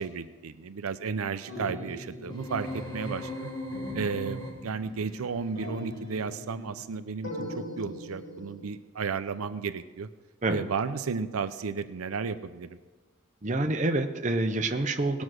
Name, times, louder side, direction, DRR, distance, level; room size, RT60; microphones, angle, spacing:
voice 1, 0.0-3.5 3.9-10.1 10.5-12.8, right 5 dB, 85° right, 11 dB, 0.5 m, -33 dB
sound 1, 1.5-3.4 3.7-5.2 5.5-6.9 7.2-8.6, equal, 60° left, 4.5 m, -41 dB
sound 2, 2.3-4.9, left 1 dB, 20° left, 1.4 m, -37 dB
voice 2, 13.4-15.2, right 2 dB, 35° right, 6 dB, 0.7 m, -27 dB
18.0 x 6.2 x 6.3 m, 1.3 s
head